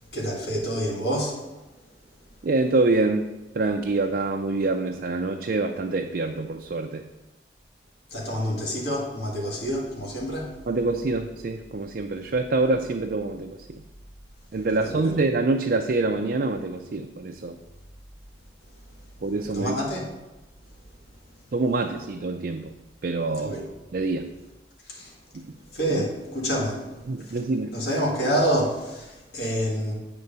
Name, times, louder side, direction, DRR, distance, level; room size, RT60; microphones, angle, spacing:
voice 1, 0.1-1.3 8.1-10.5 14.7-15.1 19.5-20.1 23.4-23.7 24.9-25.1 25.7-26.8 27.3-27.4 27.7-29.9, equal, 65° left, -4 dB, 2.1 m, -27 dB
voice 2, 2.4-3.3 3.6-7.0 10.7-13.6 14.5-17.6 19.2-19.8 21.5-22.6 23.0-23.6 23.9-24.2 25.9-26.0 27.1-27.7, right 3 dB, 55° right, 3 dB, 0.4 m, -25 dB
8.1 x 3.7 x 6.7 m, 1.1 s
head